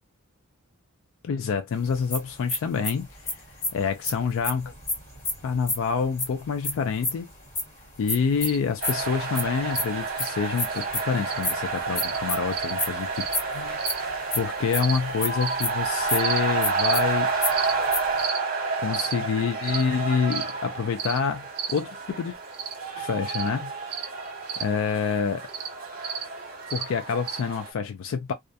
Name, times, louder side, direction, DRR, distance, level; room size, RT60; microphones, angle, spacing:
voice 1, 1.2-3.4 3.7-4.7 5.4-7.3 8.0-13.8 14.3-17.3 18.8-22.4 23.0-23.7 24.6-25.5 26.7-28.3, left 6 dB, 60° left, 0.3 m, -27 dB
sound 1, 1.8-7.6 8.1-15.3 15.6-15.7 16.0-16.2 16.4-18.2, left 2 dB, 40° left, 1.4 m, -30 dB
sound 2, 8.4-8.6 8.9-9.1 9.7-9.8 10.2-10.3 10.7-10.8 11.2-11.4 12.0-12.2 12.5-12.7 13.1-13.3 13.8-14.0 14.8-15.0 15.4-15.6 16.2-16.4 16.8-17.0 17.5-17.7 18.2-18.4 18.9-19.1 19.6-19.8 20.3-20.5 21.0-21.2 21.6-21.8 22.5-22.7 23.3-23.5 23.9-24.1 24.5-24.6 25.5-25.7 26.0-26.2 26.7-26.8 27.3-27.4, right 7 dB, 75° right, 0.5 m, -32 dB
sound 3, 8.8-27.7, right 4 dB, 40° right, 1.0 m, -30 dB
2.4 x 2.1 x 2.6 m
head